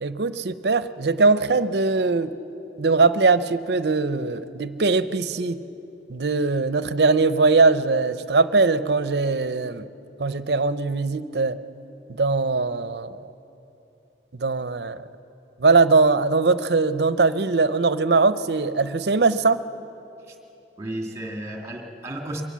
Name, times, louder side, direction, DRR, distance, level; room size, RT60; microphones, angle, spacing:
voice 1, 0.0-2.4 2.8-5.6 6.1-9.9 10.2-11.6 12.1-13.3 14.4-15.1 15.6-19.6, right 3 dB, 70° right, 13 dB, 0.7 m, -21 dB
voice 2, 20.8-22.4, right 1 dB, 15° right, 1 dB, 2.2 m, -33 dB
23.5 x 18.5 x 7.5 m, 3.0 s
head